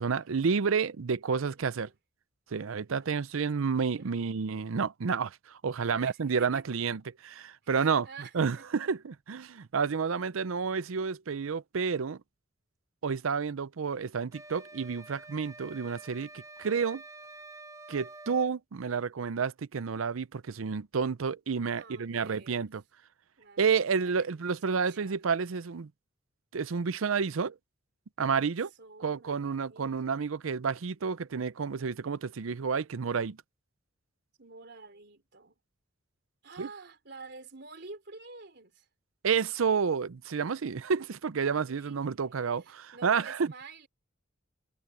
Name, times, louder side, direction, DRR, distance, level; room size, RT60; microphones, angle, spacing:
voice 1, 0.0-1.9 2.5-8.1 8.3-12.2 13.0-17.0 17.9-22.8 23.6-25.9 26.5-27.6 28.2-28.7 29.0-33.4 36.6-36.7 39.2-43.5, right 5 dB, 90° right, 0.6 m, -30 dB
voice 2, 1.3-1.9 2.5-3.5 3.8-4.4 5.9-6.8 7.6-8.7 21.8-22.7 23.4-25.2 28.3-30.2 34.4-35.6 36.4-38.9 41.5-42.0 42.6-43.9, right 4 dB, 55° right, 3.9 m, -50 dB
sound 1, 14.3-18.5, right 2 dB, 15° right, 3.9 m, -48 dB
head